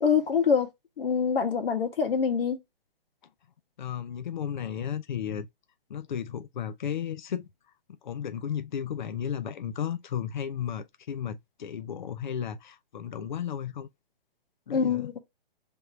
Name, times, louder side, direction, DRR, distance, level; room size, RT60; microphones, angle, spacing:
voice 1, 0.0-0.7 1.0-2.6 14.7-15.2, left 6 dB, 70° left, 1.4 m, -25 dB
voice 2, 3.8-5.5 5.9-7.4 8.0-13.9 14.7-15.1, left 8 dB, 55° left, 0.5 m, -34 dB
3.5 x 2.5 x 4.3 m
hypercardioid pair, 180°, 29 cm